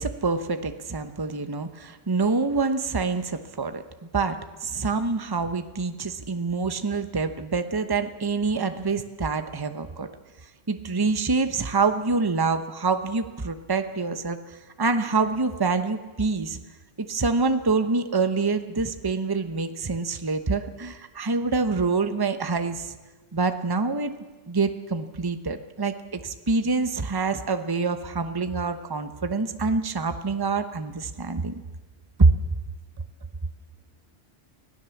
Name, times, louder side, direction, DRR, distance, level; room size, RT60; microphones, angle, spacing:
voice 1, 0.0-10.1 10.7-16.6 17.0-22.9 23.3-24.2 24.5-31.5 32.2-32.3, right 4 dB, 20° right, 9 dB, 1.0 m, -26 dB
24.5 x 17.5 x 7.2 m, 1.2 s
omnidirectional pair, 1.2 m